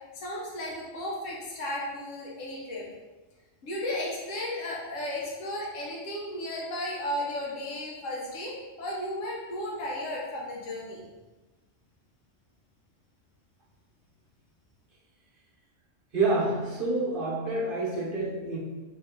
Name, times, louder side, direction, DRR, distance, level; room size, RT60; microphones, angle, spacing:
voice 1, 0.1-2.8 3.6-11.0, left 1 dB, 80° left, -4 dB, 1.2 m, -34 dB
voice 2, 16.1-18.6, right 2 dB, 50° right, -4 dB, 0.9 m, -28 dB
3.4 x 2.6 x 3.6 m, 1.2 s
omnidirectional pair, 1.3 m